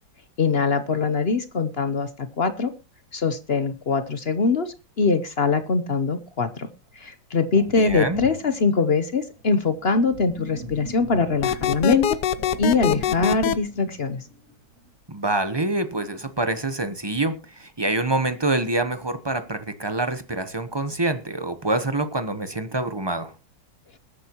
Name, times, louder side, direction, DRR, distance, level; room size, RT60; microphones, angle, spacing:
voice 1, 0.4-2.7 3.1-6.7 6.9-12.2 12.6-14.3, left 4 dB, 50° left, 11 dB, 0.7 m, -23 dB
Sink (filling or washing), 6.9-7.0 7.6-14.9, right 1 dB, 40° right, 2.7 m, -41 dB
voice 2, 7.8-8.2 15.1-23.3, right 2 dB, 25° right, 10 dB, 0.5 m, -26 dB
sound 1, 11.4-13.5, left 10 dB, 65° left, 1.3 m, -23 dB
21.5 x 9.9 x 3.0 m, 0.30 s
omnidirectional pair, 2.1 m